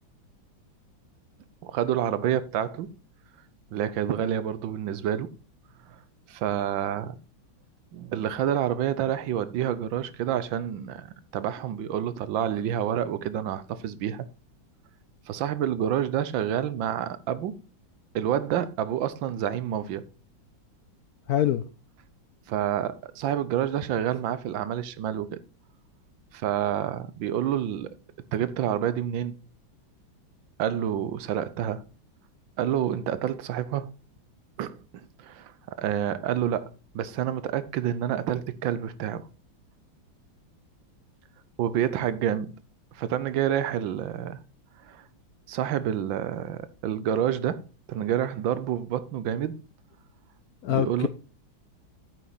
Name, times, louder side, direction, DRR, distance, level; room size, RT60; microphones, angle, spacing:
voice 1, 1.6-2.9 3.7-5.3 5.9-6.0 6.3-7.2 7.9-14.3 15.3-17.6 18.1-20.0 22.5-25.4 26.3-28.0 28.3-29.4 30.6-31.8 32.6-33.9 34.6-34.8 35.2-35.5 35.8-39.3 41.6-42.6 42.9-44.4 44.8-45.0 45.5-49.6 50.7-51.1, right 10 dB, 75° right, 1.5 m, -28 dB
voice 2, 21.3-21.6 50.6-51.1, left 12 dB, 75° left, 0.8 m, -24 dB
9.4 x 8.8 x 4.1 m
omnidirectional pair, 2.2 m